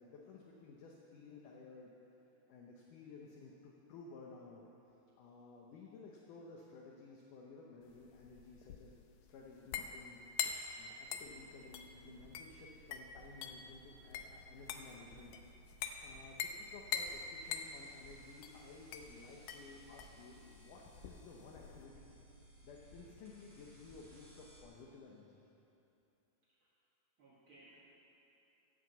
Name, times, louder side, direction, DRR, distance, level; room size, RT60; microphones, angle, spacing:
voice 1, 0.0-1.9 2.5-4.6 5.1-9.0 9.3-10.2 10.8-15.4 16.0-22.1 22.6-25.4, left 4 dB, 70° left, -2 dB, 2.1 m, -55 dB
sound 1, 7.9-21.9, left 7 dB, 85° left, 2.0 m, -44 dB
sound 2, 11.2-24.6, right 2 dB, 25° left, 2.8 m, -61 dB
sound 3, 17.6-24.6, equal, 5° right, 1.5 m, -66 dB
voice 2, 26.4-26.7 27.2-27.8, right 2 dB, 75° right, -6 dB, 1.1 m, -63 dB
15.5 x 7.8 x 7.9 m, 2.9 s
omnidirectional pair, 4.8 m